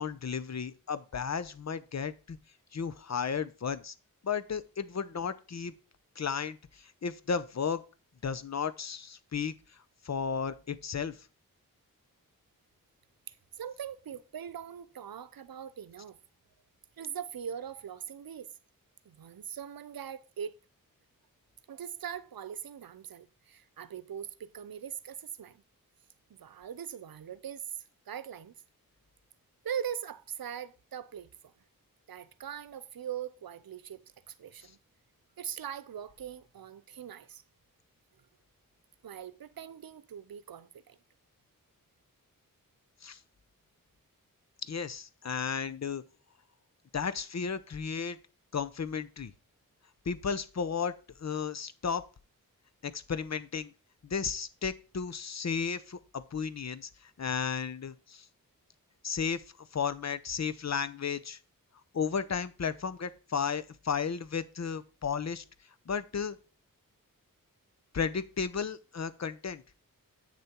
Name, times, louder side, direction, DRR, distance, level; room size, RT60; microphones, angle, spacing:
voice 1, 0.0-2.4 2.7-3.9 4.2-5.7 6.2-7.8 8.2-9.5 10.0-11.2 43.0-43.2 44.7-46.0 46.9-48.2 48.5-49.3 50.1-50.9 51.2-52.0 52.8-53.7 54.0-58.2 59.0-59.4 59.7-61.4 61.9-65.4 65.9-66.4 67.9-69.6, left 6 dB, 50° left, 0.8 m, -34 dB
voice 2, 13.3-16.2 17.0-18.5 19.0-20.6 21.7-25.6 26.3-28.5 29.6-31.5 32.1-34.8 35.4-37.4 39.0-41.0, right 8 dB, 85° right, 0.7 m, -41 dB
8.6 x 6.7 x 4.4 m
wide cardioid pair, 95°, 35 cm